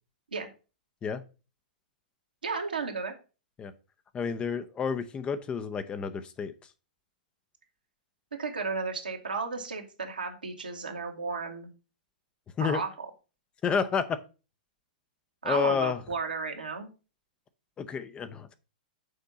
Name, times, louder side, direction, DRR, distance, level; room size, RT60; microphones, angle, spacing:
voice 1, 2.4-3.1 8.4-11.7 12.6-13.1 15.4-16.9, right 4 dB, 80° right, 2 dB, 1.6 m, -33 dB
voice 2, 4.1-6.5 12.6-12.8 13.6-14.2 15.4-16.0 17.8-18.5, left 6 dB, 20° left, 10 dB, 0.6 m, -30 dB
6.5 x 4.5 x 5.3 m, 0.33 s
figure-of-eight pair, 105°, 5 cm